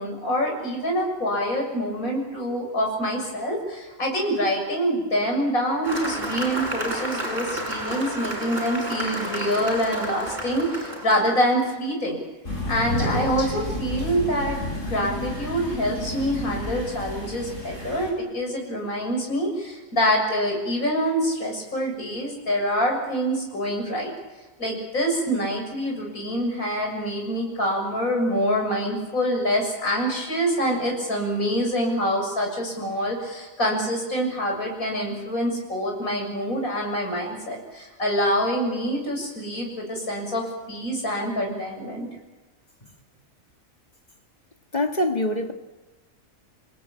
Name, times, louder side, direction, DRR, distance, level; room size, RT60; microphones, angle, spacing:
voice 1, 0.0-12.2 12.7-24.1 24.6-42.1, equal, 80° left, 7.6 m, -26 dB
Cheering / Applause, 5.8-11.6, right 1 dB, 30° right, 7.3 m, -31 dB
Crow, 12.4-18.1, left 1 dB, 60° left, 7.5 m, -30 dB
voice 2, 44.7-45.5, left 1 dB, 30° left, 1.8 m, -24 dB
28.5 x 18.5 x 8.9 m
omnidirectional pair, 1.5 m